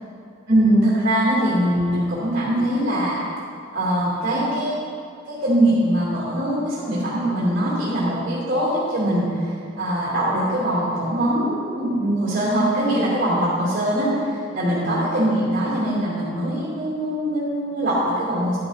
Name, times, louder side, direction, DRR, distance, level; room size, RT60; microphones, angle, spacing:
voice 1, 0.5-3.2 3.7-4.7 5.3-18.6, right 1 dB, 45° right, -8 dB, 2.8 m, -22 dB
12.5 x 11.5 x 2.7 m, 2.4 s
head